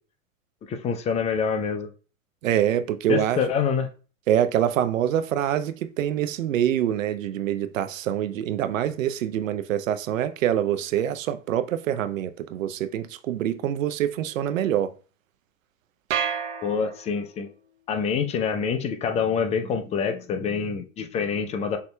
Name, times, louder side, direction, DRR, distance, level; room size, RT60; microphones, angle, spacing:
voice 1, 0.7-1.9 3.1-3.9 16.6-17.5 17.9-21.8, left 6 dB, 15° left, 0.5 m, -26 dB
voice 2, 2.4-3.5 4.3-14.9, right 10 dB, 70° right, 0.6 m, -25 dB
sound 1, 16.1-17.5, right 8 dB, 55° right, 0.9 m, -30 dB
6.6 x 2.8 x 2.2 m
hypercardioid pair, 105°, 41 cm